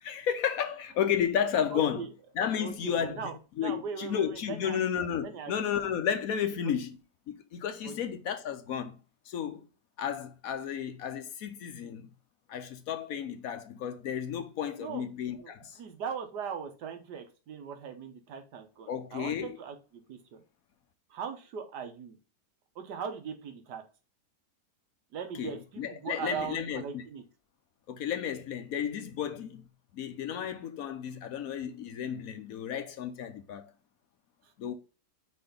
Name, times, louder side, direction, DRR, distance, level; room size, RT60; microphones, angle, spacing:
voice 1, 0.0-2.1 2.4-3.2 3.6-7.0 7.3-9.0 9.3-9.6 10.0-12.1 12.5-15.8 18.9-19.6 25.3-27.0 27.9-29.7 29.9-33.7 34.6-34.7, left 8 dB, 65° left, 1.1 m, -32 dB
voice 2, 1.7-2.1 2.6-4.8 5.2-5.5 7.8-7.9 14.8-20.4 21.1-22.2 22.7-23.8 25.1-27.2, right 7 dB, 80° right, 1.6 m, -39 dB
4.8 x 4.3 x 5.1 m
omnidirectional pair, 1.8 m